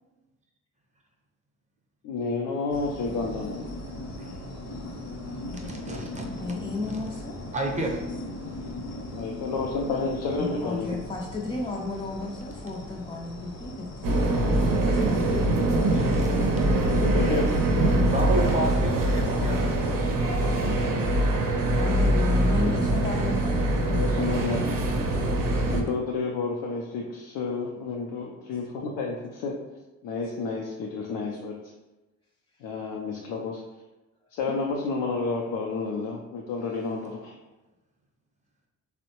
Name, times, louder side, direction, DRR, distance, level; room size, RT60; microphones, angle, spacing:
voice 1, 2.0-3.6 9.2-11.0 16.9-17.6 21.5-21.6 22.5-22.6 23.9-24.6 25.7-29.6 30.0-31.5 32.6-33.6 34.3-37.3, left 4 dB, 75° left, 0 dB, 0.5 m, -30 dB
sound 1, 2.7-19.9, left 1 dB, 55° left, 0.8 m, -39 dB
voice 2, 5.5-6.3 6.8-7.0 7.5-8.2 15.9-17.0 18.1-20.2, right 1 dB, 20° right, 0 dB, 0.6 m, -32 dB
voice 3, 6.4-7.4 10.3-16.3 19.4-19.6 21.8-24.6 34.5-34.6, left 2 dB, 20° left, -4 dB, 0.4 m, -34 dB
sound 2, 14.0-25.8, right 1 dB, 70° right, 0.6 m, -23 dB
3.5 x 2.1 x 2.8 m, 1.1 s
supercardioid pair, 70°, 33 cm